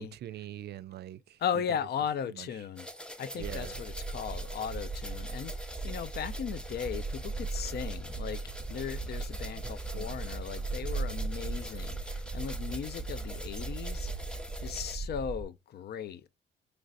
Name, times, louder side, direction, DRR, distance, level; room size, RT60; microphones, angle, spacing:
voice 1, 0.0-1.4 2.3-2.5 3.3-3.8 9.6-10.2, right 12 dB, 55° right, 0.4 m, -44 dB
voice 2, 1.4-2.9 3.2-8.4 8.7-14.3 14.6-16.3, left 8 dB, 55° left, 0.5 m, -37 dB
sound 1, 2.8-15.0, equal, 5° left, 0.6 m, -46 dB
sound 2, 3.4-15.4, right 3 dB, 20° right, 0.8 m, -37 dB
3.9 x 3.2 x 2.5 m
cardioid pair, 90°, 20 cm